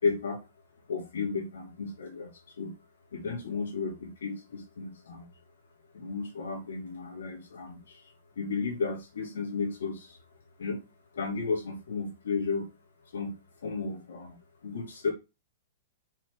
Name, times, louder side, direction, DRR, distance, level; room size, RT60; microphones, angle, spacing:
voice 1, 0.0-0.4 0.9-2.7 3.1-5.3 5.9-8.0 8.4-10.2 10.6-10.8 11.1-12.7 13.1-14.4 14.6-15.1, left 4 dB, 90° left, 2 dB, 2.6 m, -33 dB
5.9 x 4.4 x 3.9 m, 0.26 s
hypercardioid pair, 135°, 0 cm